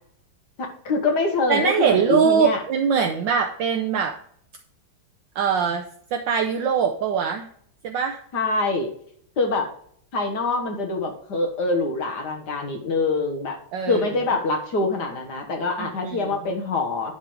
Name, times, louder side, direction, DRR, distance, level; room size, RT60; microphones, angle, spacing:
voice 1, 0.6-2.6 8.3-8.9 9.4-9.7 10.1-13.6 13.9-17.1, left 3 dB, 55° left, 3 dB, 1.6 m, -25 dB
voice 2, 1.5-4.2 5.3-5.8 6.1-7.5 7.8-8.2 13.7-14.0 15.8-16.3, right 6 dB, 70° right, 3 dB, 1.2 m, -22 dB
10.0 x 3.6 x 4.8 m, 0.63 s
omnidirectional pair, 2.4 m